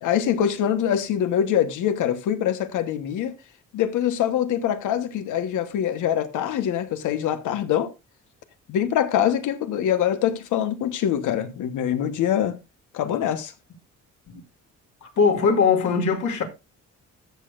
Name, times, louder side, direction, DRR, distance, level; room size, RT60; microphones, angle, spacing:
voice 1, 0.0-3.3 3.7-7.9 8.7-12.6 12.9-13.5, left 10 dB, 85° left, 1.2 m, -24 dB
voice 2, 15.0-16.4, left 5 dB, 70° left, 2.4 m, -21 dB
14.0 x 6.6 x 2.5 m
cardioid pair, 90°, 30 cm